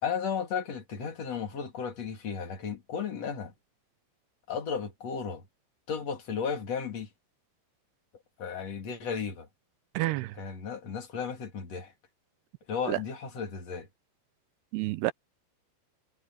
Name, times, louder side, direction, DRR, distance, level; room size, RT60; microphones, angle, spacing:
voice 1, 0.0-3.5 4.5-5.5 5.9-7.1 8.4-9.5 10.4-11.9 12.7-13.9, left 6 dB, 40° left, 3.4 m, -34 dB
voice 2, 10.0-10.4 12.9-13.0 14.7-15.1, right 17 dB, 80° right, 2.6 m, -29 dB
omnidirectional pair, 5.1 m